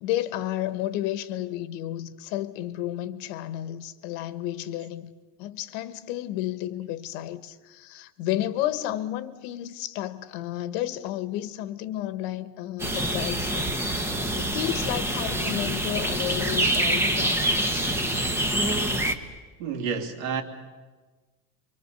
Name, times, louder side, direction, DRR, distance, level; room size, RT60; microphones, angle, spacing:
voice 1, 0.0-5.1 5.4-13.7 14.2-17.5 19.0-19.1, left 13 dB, 60° left, 1.4 m, -32 dB
sound 1, 12.8-19.1, right 1 dB, 5° right, 1.0 m, -26 dB
voice 2, 19.6-20.4, right 6 dB, 75° right, 3.2 m, -29 dB
29.0 x 24.0 x 6.9 m
cardioid pair, 165°, 43 cm